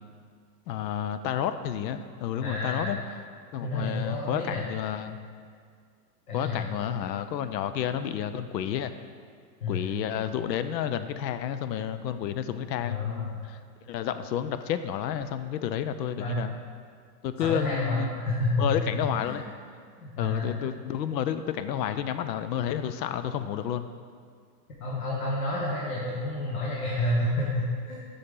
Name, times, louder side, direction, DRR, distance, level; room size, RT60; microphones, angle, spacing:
voice 1, 0.7-3.0 3.5-5.2 6.3-8.9 9.7-13.6 13.9-16.5 17.2-18.2 18.6-19.4 20.2-23.9, left 9 dB, 85° left, 11 dB, 0.6 m, -30 dB
voice 2, 2.4-3.0 3.6-4.7 6.3-6.6 9.6-9.9 12.8-13.5 16.2-16.4 17.4-18.8 19.2-19.4 20.0-20.7 24.8-28.0, left 2 dB, 60° left, -5 dB, 1.3 m, -30 dB
6.8 x 5.5 x 3.7 m, 2.1 s
supercardioid pair, 180°, 49 cm